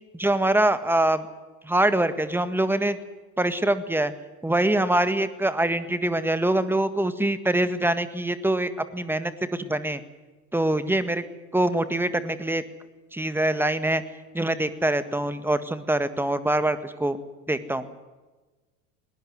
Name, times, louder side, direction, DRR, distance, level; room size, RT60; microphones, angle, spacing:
voice 1, 0.1-1.2 1.6-3.0 3.4-4.1 4.4-10.0 10.5-11.2 11.5-12.6 13.1-14.0 14.3-17.2 17.5-17.9, right 1 dB, 5° right, 12 dB, 1.8 m, -24 dB
21.5 x 18.5 x 9.6 m, 1.2 s
figure-of-eight pair, 75°, 46 cm